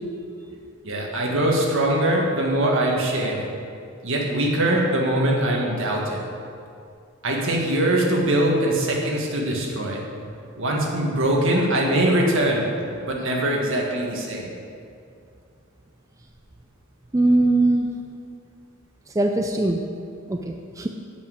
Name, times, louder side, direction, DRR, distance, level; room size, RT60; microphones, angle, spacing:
voice 1, 0.8-3.4 4.0-6.2 7.2-10.0 10.6-12.6 13.0-14.5, right 1 dB, 65° right, -1 dB, 1.9 m, -22 dB
voice 2, 17.1-17.9 19.2-19.8 20.3-20.9, right 2 dB, 15° right, 3 dB, 0.4 m, -20 dB
8.5 x 6.3 x 8.3 m, 2.4 s
head